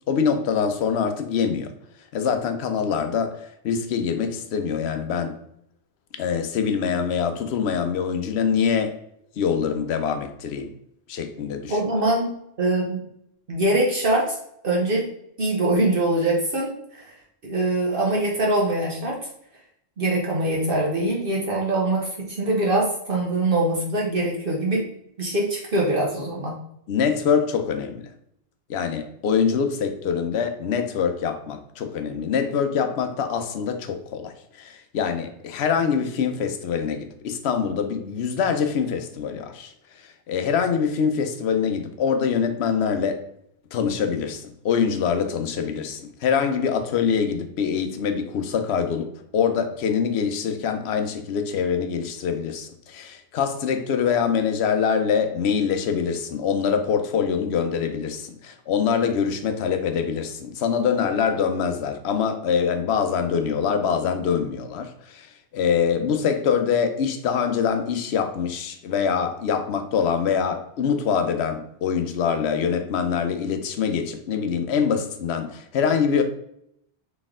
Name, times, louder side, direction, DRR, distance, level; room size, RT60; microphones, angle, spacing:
voice 1, 0.1-1.7 2.1-5.4 6.1-9.0 9.4-10.7 11.1-11.8 26.9-28.1 28.7-43.2 43.7-76.2, left 6 dB, 70° left, 0.9 m, -24 dB
voice 2, 11.7-12.3 12.6-13.0 13.5-14.4 14.6-15.0 15.4-17.2 17.4-19.2 20.0-24.8 25.2-26.5, right 1 dB, 55° right, 1.0 m, -23 dB
4.1 x 3.3 x 3.6 m
omnidirectional pair, 1.1 m